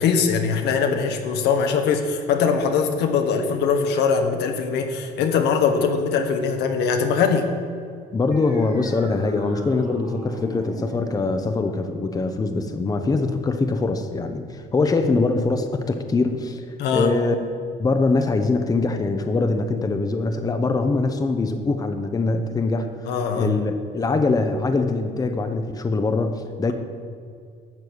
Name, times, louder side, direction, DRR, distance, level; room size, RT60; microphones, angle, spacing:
voice 1, 0.0-7.5 16.8-17.1 23.1-23.5, left 6 dB, 80° left, 5 dB, 1.3 m, -21 dB
voice 2, 8.1-17.3 17.8-26.7, left 3 dB, 20° left, 7 dB, 0.8 m, -23 dB
sound 1, 8.3-15.3, right 2 dB, 30° right, 1.7 m, -40 dB
12.0 x 4.5 x 8.1 m, 2.3 s
cardioid pair, 110°, 17 cm